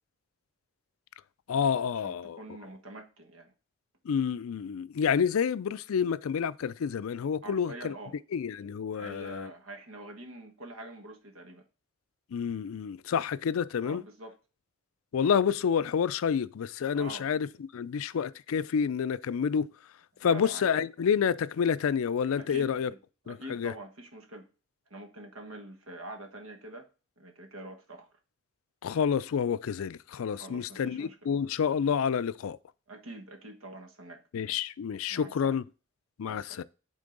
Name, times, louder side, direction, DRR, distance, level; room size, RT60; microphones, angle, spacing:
voice 1, 1.5-2.4 4.1-7.9 8.3-9.5 12.3-14.0 15.1-17.5 17.7-19.7 20.2-22.9 23.3-23.7 28.8-32.6 34.3-35.6 36.2-36.6, left 7 dB, 80° left, 0.4 m, -29 dB
voice 2, 2.0-3.5 7.4-8.2 8.9-11.7 13.8-14.4 16.9-17.3 20.2-20.7 22.4-23.0 23.3-24.5 24.9-26.9 27.2-28.1 30.4-31.2 32.9-34.2 35.1-35.6 36.2-36.6, right 2 dB, 85° right, 1.3 m, -45 dB
8.8 x 3.8 x 3.8 m
head